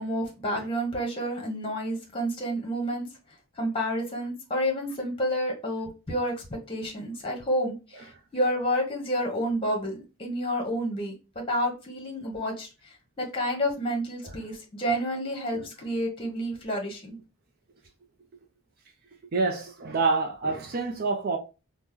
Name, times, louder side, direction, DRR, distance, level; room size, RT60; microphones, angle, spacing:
voice 1, 0.0-3.1 3.6-17.2, equal, 25° left, 1.0 m, -30 dB
voice 2, 19.3-21.4, right 3 dB, 45° right, 0.4 m, -27 dB
3.0 x 2.1 x 3.4 m
head